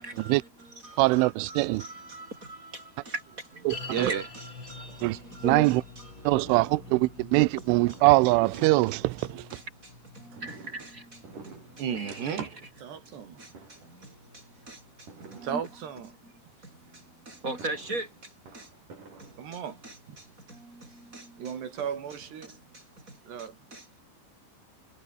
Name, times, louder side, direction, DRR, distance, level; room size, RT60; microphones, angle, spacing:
voice 1, 0.0-6.8 7.2-7.3 7.6-8.0 8.9-12.5 13.4-15.6 16.2-16.3 16.6-18.7 19.2-21.6 22.5-24.0, right 2 dB, 15° right, 6.8 m, -41 dB
voice 2, 1.0-1.8 3.7-4.1 5.0-5.2 5.4-5.8 6.3-9.4, right 21 dB, 90° right, 3.2 m, -23 dB
sound 1, 3.7-15.0 15.2-15.3 16.0-16.1, left 4 dB, 25° left, 3.7 m, -48 dB
voice 3, 3.9-4.3 10.3-10.4 11.8-13.4 15.4-16.2 19.4-19.8 20.1-20.2 21.4-22.6 23.3-23.6, right 8 dB, 60° right, 5.6 m, -34 dB
Fireworks, 6.4-9.6 10.3-13.3 13.5-14.1 15.1-16.2 17.3-20.0 20.7-20.8 21.1-21.2 21.6-22.8 23.1-23.2 23.4-23.5, right 4 dB, 40° right, 7.6 m, -50 dB
omnidirectional pair, 5.5 m